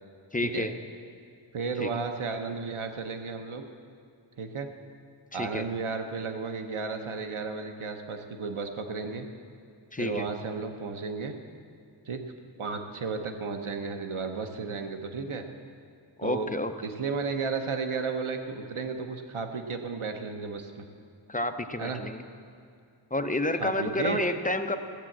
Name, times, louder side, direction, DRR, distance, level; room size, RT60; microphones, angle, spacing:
voice 1, 0.3-0.7 1.8-1.9 5.4-5.6 9.9-10.3 16.2-16.7 21.3-22.2 23.1-24.8, left 2 dB, 15° left, 8 dB, 0.6 m, -29 dB
voice 2, 1.5-3.6 4.4-4.7 5.3-9.3 10.0-11.3 12.1-12.2 12.6-15.5 16.2-16.5 16.8-20.9 21.8-22.0 23.6-24.2, right 4 dB, 80° right, 5 dB, 1.0 m, -33 dB
15.0 x 7.5 x 7.4 m, 2.3 s
wide cardioid pair, 60°, 49 cm